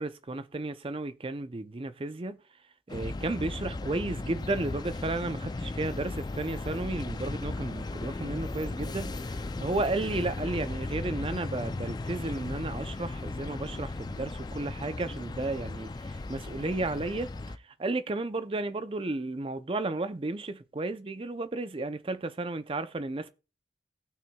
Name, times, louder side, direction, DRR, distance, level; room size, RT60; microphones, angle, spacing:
voice 1, 0.0-2.4 2.9-17.3 17.6-23.3, right 2 dB, 30° right, 0.5 m, -33 dB
sound 1, 2.9-17.6, left 2 dB, 20° left, 0.3 m, -36 dB
17.5 x 6.1 x 2.3 m
head